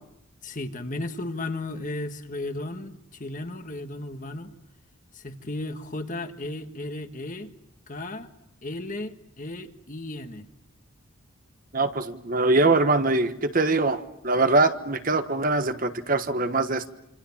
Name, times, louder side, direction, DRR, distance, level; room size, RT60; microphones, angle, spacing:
voice 1, 0.4-4.5 5.1-7.5 7.9-8.3 8.6-10.4, left 2 dB, 35° left, 7 dB, 1.6 m, -34 dB
voice 2, 11.7-16.9, right 2 dB, 40° right, 9 dB, 1.3 m, -23 dB
27.5 x 27.0 x 7.3 m, 0.86 s
head